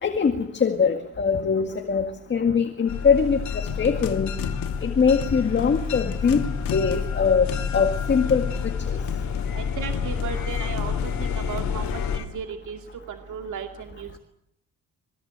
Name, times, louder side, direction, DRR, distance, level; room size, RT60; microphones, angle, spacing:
voice 1, 0.0-4.3 4.8-6.4 6.7-7.5 7.7-8.5 8.9-9.0, left 6 dB, 30° left, 6 dB, 2.1 m, -22 dB
sound 1, 2.9-12.2, left 6 dB, 55° left, 3.1 m, -29 dB
sound 2, 3.5-12.3, left 7 dB, 75° left, 2.7 m, -37 dB
voice 2, 9.5-12.8 13.1-14.2, right 7 dB, 60° right, 5 dB, 2.3 m, -35 dB
26.5 x 22.5 x 8.2 m, 0.74 s
cardioid pair, 170°, 34 cm